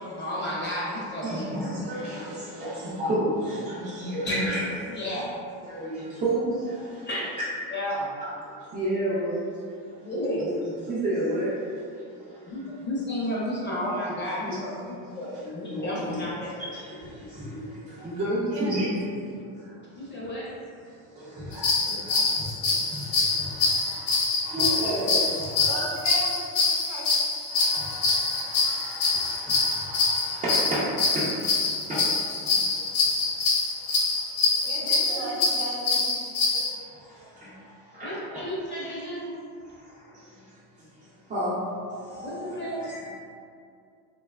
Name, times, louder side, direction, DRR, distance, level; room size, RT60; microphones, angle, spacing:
voice 1, 0.0-1.5 4.2-4.6 4.9-5.2 7.1-7.2 7.7-8.1 10.0-10.5 12.5-16.6 20.0-20.5 34.8-35.4 38.0-39.3 42.2-42.8, equal, 25° left, -7 dB, 0.7 m, -32 dB
voice 2, 1.2-5.2 5.6-7.1 7.4-7.5 8.2-10.1 10.5-12.9 14.4-14.9 15.3-16.2 16.6-20.2 20.9-26.0 26.8-27.0 27.5-35.2 36.4-38.5 39.6-41.6 41.9-43.1, right 1 dB, 20° right, -10 dB, 0.4 m, -33 dB
sound 1, 21.5-36.7, left 3 dB, 75° left, 0.7 m, -25 dB
voice 3, 25.7-27.0 34.6-36.2, right 2 dB, 70° right, -2 dB, 0.7 m, -36 dB
2.7 x 2.2 x 2.2 m, 2.3 s
cardioid pair, 110°, 47 cm